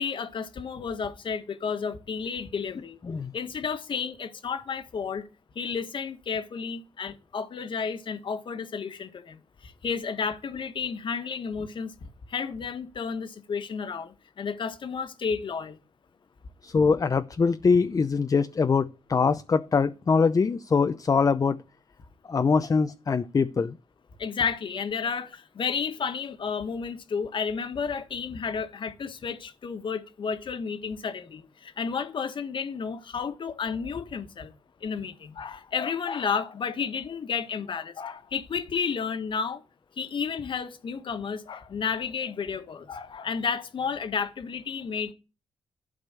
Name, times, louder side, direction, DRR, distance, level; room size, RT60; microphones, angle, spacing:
voice 1, 0.0-3.0 3.3-5.3 5.5-15.8 24.2-34.5 34.8-39.6 40.0-45.1, left 6 dB, 55° left, 1.6 m, -32 dB
voice 2, 16.6-21.6 22.3-23.8, left 5 dB, 35° left, 0.7 m, -23 dB
12.0 x 5.1 x 8.2 m
cardioid pair, 80°, 10 cm